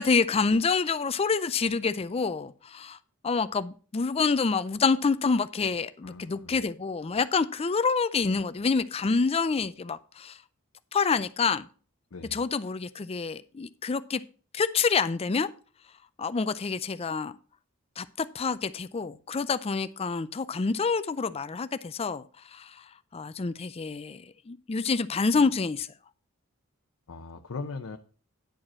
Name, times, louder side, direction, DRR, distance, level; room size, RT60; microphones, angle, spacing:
voice 1, 0.0-3.0 3.2-10.4 10.9-11.6 12.3-14.2 14.5-15.5 16.2-17.3 18.0-22.2 22.5-22.7 23.1-25.9, left 4 dB, 30° left, 0.4 m, -27 dB
voice 2, 6.0-6.6 12.1-12.4 25.3-25.5 27.1-28.0, left 4 dB, 80° left, 0.7 m, -40 dB
10.5 x 4.9 x 6.2 m
head